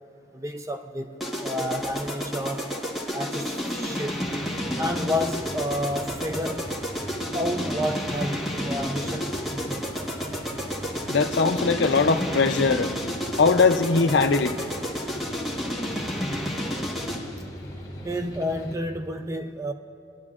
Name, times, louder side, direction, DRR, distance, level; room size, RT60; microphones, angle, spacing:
voice 1, 0.3-1.1 1.4-2.7 3.1-4.2 4.8-6.7 7.3-9.8 18.0-19.7, equal, 15° right, 0.5 m, -30 dB
sound 1, 1.2-17.4, equal, ahead, 1.2 m, -31 dB
sound 2, 4.1-18.7, equal, 20° left, 1.2 m, -40 dB
voice 2, 11.1-12.9 13.4-14.6, left 4 dB, 75° left, 0.5 m, -20 dB
22.5 x 10.5 x 2.4 m
head